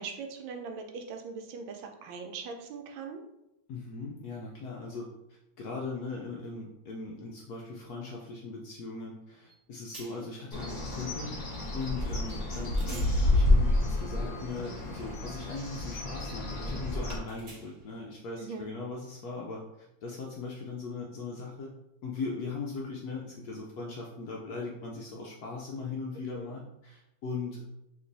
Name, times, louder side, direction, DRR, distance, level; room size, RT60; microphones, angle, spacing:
voice 1, 0.0-3.2 18.4-18.7 26.3-26.5, right 5 dB, 80° right, 4 dB, 1.4 m, -40 dB
voice 2, 3.7-5.1 5.6-11.3 11.7-21.7 22.0-27.6, left 4 dB, 75° left, -2 dB, 0.9 m, -39 dB
sound 1, 9.5-9.6 9.9-10.4 12.3-12.4 12.7-18.0, right 3 dB, 50° right, 0.9 m, -53 dB
Bird, 10.5-17.2, left 1 dB, 35° left, 1.2 m, -29 dB
3.2 x 3.0 x 3.9 m, 0.88 s
omnidirectional pair, 2.1 m